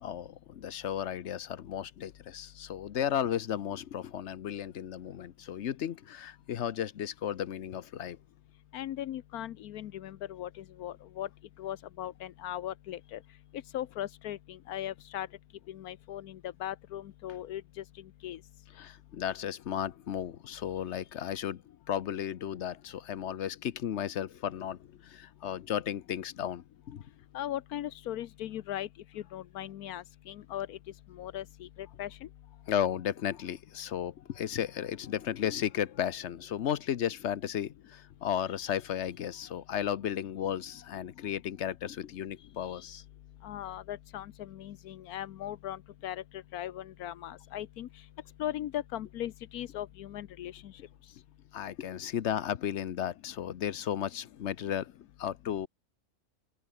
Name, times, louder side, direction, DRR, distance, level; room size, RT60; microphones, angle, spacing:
voice 1, 0.0-8.2 18.8-21.6 21.9-27.0 32.7-43.0 51.5-54.9 55.2-55.7, left 10 dB, 55° left, 1.0 m, -34 dB
voice 2, 8.7-11.3 11.6-13.2 13.7-15.3 15.7-17.8 18.2-18.4 27.3-28.9 29.1-30.8 31.1-32.3 43.4-47.9 48.4-50.7, left 12 dB, 85° left, 1.3 m, -38 dB
open air
omnidirectional pair, 1.5 m